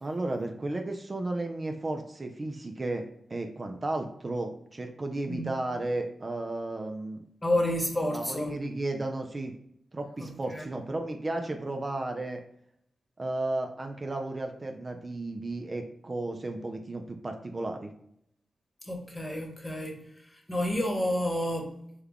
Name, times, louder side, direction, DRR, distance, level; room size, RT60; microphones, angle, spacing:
voice 1, 0.0-3.0 3.3-7.2 8.1-9.5 9.9-12.4 13.2-17.9, right 2 dB, 40° right, 0.4 m, -34 dB
voice 2, 7.4-8.6 10.2-10.7 18.8-21.7, left 1 dB, 20° left, 1.1 m, -30 dB
3.4 x 2.3 x 3.5 m
cardioid pair, 50°, 0 cm